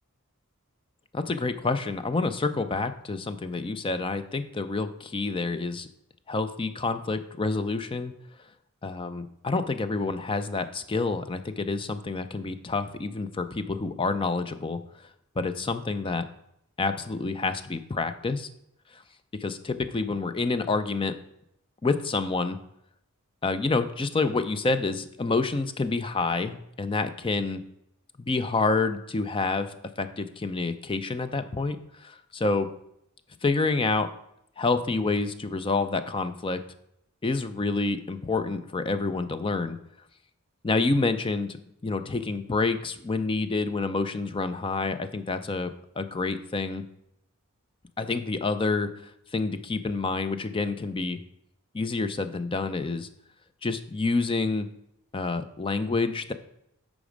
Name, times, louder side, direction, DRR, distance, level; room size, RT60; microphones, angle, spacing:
voice 1, 1.1-5.9 6.3-8.1 8.8-14.8 15.4-16.3 16.8-18.5 18.9-19.0 19.4-21.1 21.8-22.6 23.4-27.6 28.2-32.7 33.4-34.1 34.6-36.6 37.2-39.8 40.6-41.6 41.8-46.8 48.0-51.2 51.7-53.1 53.6-54.7 55.1-56.3, left 3 dB, 25° left, 11 dB, 0.4 m, -28 dB
8.4 x 5.0 x 5.0 m, 0.77 s
head